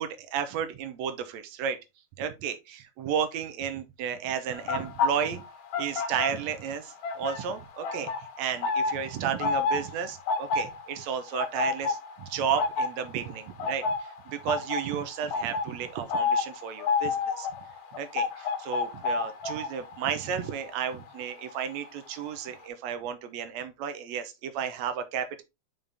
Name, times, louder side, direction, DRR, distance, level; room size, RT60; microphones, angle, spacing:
voice 1, 0.0-1.8 2.2-5.4 5.8-8.1 8.4-17.5 18.0-18.3 18.6-25.4, right 8 dB, 70° right, 1.9 m, -33 dB
sound 1, 4.5-6.7 7.0-21.9 22.1-22.5, left 4 dB, 85° left, 2.8 m, -31 dB
5.6 x 5.5 x 3.4 m
omnidirectional pair, 3.6 m